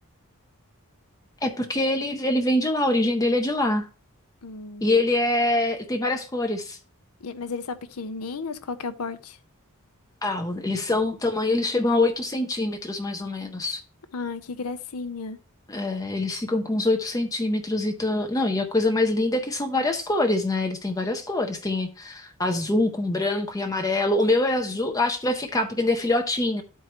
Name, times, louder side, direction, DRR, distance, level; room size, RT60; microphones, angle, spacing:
voice 1, 1.4-3.9 4.8-6.8 10.2-13.8 15.7-26.6, left 2 dB, 15° left, 0.5 m, -24 dB
voice 2, 4.4-5.0 7.2-9.4 14.1-15.4, left 4 dB, 80° left, 0.7 m, -34 dB
12.0 x 4.6 x 3.0 m
head